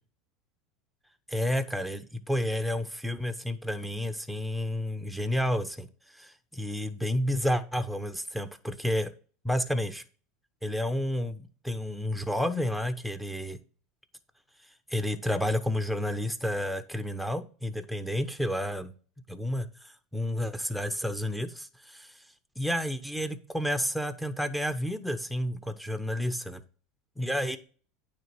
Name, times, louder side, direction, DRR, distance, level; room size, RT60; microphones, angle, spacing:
voice 1, 1.3-5.9 6.1-9.1 9.4-10.0 10.6-13.6 14.9-18.9 19.3-22.1 22.6-26.6 27.2-27.6, equal, ahead, 9 dB, 0.9 m, -30 dB
9.2 x 3.6 x 6.1 m, 0.39 s
supercardioid pair, 115°, 0 cm